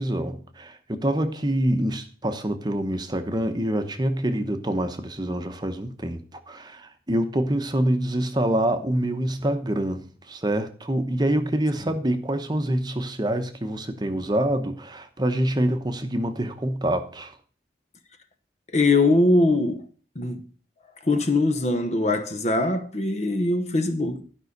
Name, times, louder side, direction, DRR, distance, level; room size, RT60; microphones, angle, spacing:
voice 1, 0.0-17.3, right 1 dB, 20° right, 0.9 m, -26 dB
voice 2, 18.7-19.9 20.1-20.4 21.0-24.2, left 2 dB, 35° left, 1.0 m, -22 dB
12.0 x 5.5 x 6.6 m
head